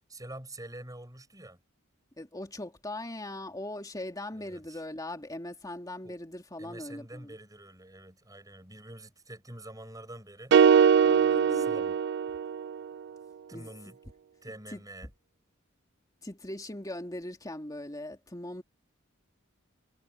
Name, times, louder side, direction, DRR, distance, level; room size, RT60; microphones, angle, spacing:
voice 1, 0.1-1.6 4.3-4.8 6.0-6.2 6.6-10.5 11.5-12.0 13.5-14.0 14.4-15.1, right 1 dB, 20° right, 7.1 m, -46 dB
voice 2, 2.2-7.4 11.0-11.9 13.5-13.7 14.7-14.8 16.2-18.6, left 1 dB, 20° left, 2.8 m, -40 dB
sound 1, 10.5-12.8, right 7 dB, 55° right, 0.3 m, -22 dB
head